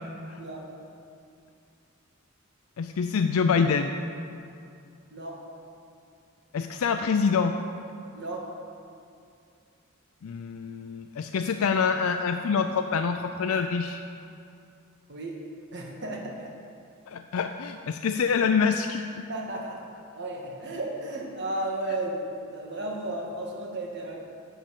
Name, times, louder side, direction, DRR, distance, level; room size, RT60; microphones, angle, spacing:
voice 1, 2.8-3.9 6.5-7.6 10.2-14.0 17.1-19.2, left 5 dB, 85° left, 6 dB, 0.4 m, -26 dB
voice 2, 8.1-8.5 15.1-15.4 15.7-16.5 19.3-19.8 20.1-22.2 22.5-24.2, right 2 dB, 55° right, -1 dB, 1.5 m, -34 dB
10.0 x 5.4 x 7.3 m, 2.5 s
head